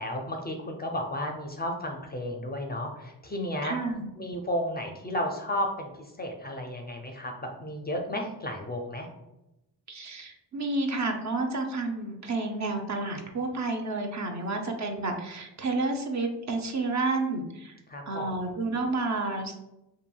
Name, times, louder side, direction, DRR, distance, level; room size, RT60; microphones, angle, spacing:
voice 1, 0.0-3.8 4.2-7.3 7.6-9.1 14.3-14.4 17.9-18.3, left 1 dB, 20° left, 3 dB, 0.4 m, -33 dB
voice 2, 3.6-4.1 9.9-17.8 18.1-19.5, right 3 dB, 40° right, 3 dB, 0.5 m, -30 dB
2.8 x 2.6 x 2.2 m, 0.90 s
supercardioid pair, 45°, 45 cm